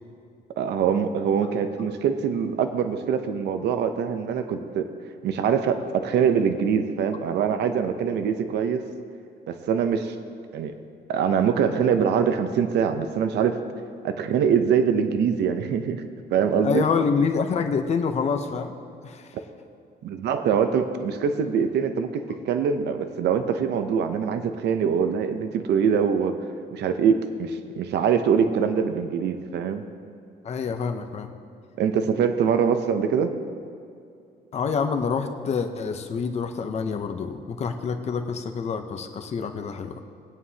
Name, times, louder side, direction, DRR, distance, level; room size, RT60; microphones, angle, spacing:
voice 1, 0.6-4.9 5.2-8.8 9.5-10.2 10.5-10.7 11.1-13.6 14.0-16.8 20.0-26.4 26.7-29.9 31.8-33.3, right 7 dB, 75° right, 8 dB, 0.8 m, -23 dB
voice 2, 16.6-18.7 19.0-19.3 30.4-31.3 34.5-39.9, left 5 dB, 40° left, 6 dB, 0.7 m, -27 dB
19.5 x 9.3 x 2.8 m, 2.5 s
cardioid pair, 165°, 18 cm